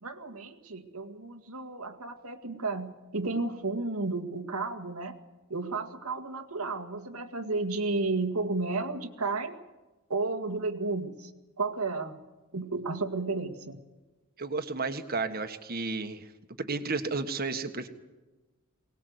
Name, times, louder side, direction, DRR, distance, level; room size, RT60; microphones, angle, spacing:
voice 1, 0.0-5.2 5.5-9.6 10.1-11.3 11.6-12.2 12.5-13.8, right 3 dB, 90° right, 7 dB, 2.1 m, -32 dB
voice 2, 14.4-16.3 16.6-17.9, right 3 dB, 45° right, 8 dB, 1.6 m, -32 dB
23.0 x 19.5 x 8.1 m, 1.1 s
head